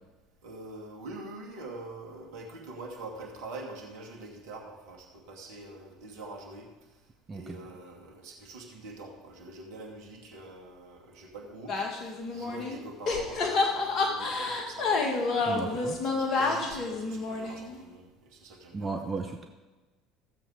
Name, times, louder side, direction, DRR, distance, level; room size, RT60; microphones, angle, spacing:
voice 1, 0.4-6.7 7.3-18.9, right 2 dB, 65° right, 1 dB, 2.4 m, -45 dB
sound 1, 11.7-12.8 13.1-17.8, left 3 dB, 45° left, 2.1 m, -29 dB
voice 2, 15.5-16.0 18.7-19.4, right 3 dB, 25° right, 4 dB, 1.1 m, -35 dB
15.0 x 7.6 x 5.1 m, 1.2 s
hypercardioid pair, 65°, 0 cm